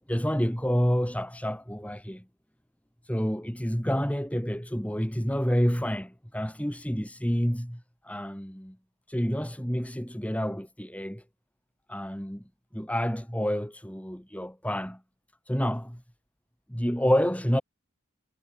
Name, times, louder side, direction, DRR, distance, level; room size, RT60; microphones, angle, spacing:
voice 1, 0.1-2.2 3.1-8.8 9.1-11.2 11.9-12.4 12.7-15.0 15.5-16.0 16.7-17.6, equal, 5° left, 3.9 m, -28 dB
head